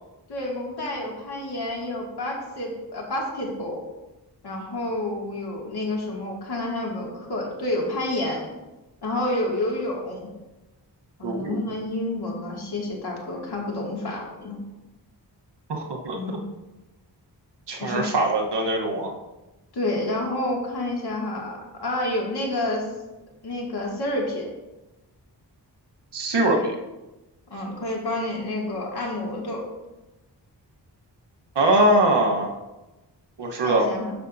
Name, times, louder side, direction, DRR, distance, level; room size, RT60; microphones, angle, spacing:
voice 1, 0.3-3.8 4.4-8.5 9.0-10.3 11.2-14.6 16.1-16.4 17.8-18.1 19.7-22.9 23.4-24.5 26.5-26.6 27.5-29.6 33.6-34.1, left 1 dB, 65° left, -2 dB, 2.3 m, -29 dB
voice 2, 11.2-11.6 15.7-16.4 17.7-19.1 26.1-26.8 31.5-32.5 33.4-33.9, right 1 dB, 70° right, 1 dB, 1.2 m, -22 dB
11.5 x 6.8 x 2.7 m, 1.0 s
wide cardioid pair, 85°, 42 cm